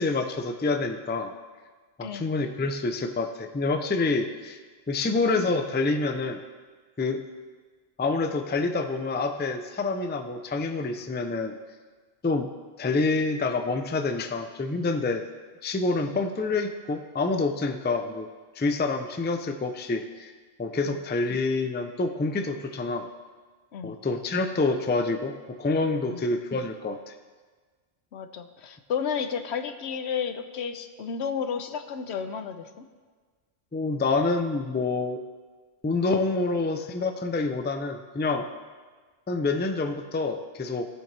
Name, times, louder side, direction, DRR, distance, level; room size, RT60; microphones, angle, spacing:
voice 1, 0.0-1.3 2.0-4.6 4.9-6.4 7.0-7.2 8.0-11.6 12.2-12.5 12.8-15.2 15.6-18.3 18.6-20.3 20.6-23.1 23.8-27.1 33.7-35.2 35.8-38.5 39.3-40.9, left 3 dB, 15° left, 7 dB, 0.3 m, -27 dB
voice 2, 28.1-32.8, left 7 dB, 85° left, 8 dB, 1.0 m, -32 dB
17.5 x 7.6 x 3.3 m, 1.5 s
omnidirectional pair, 1.1 m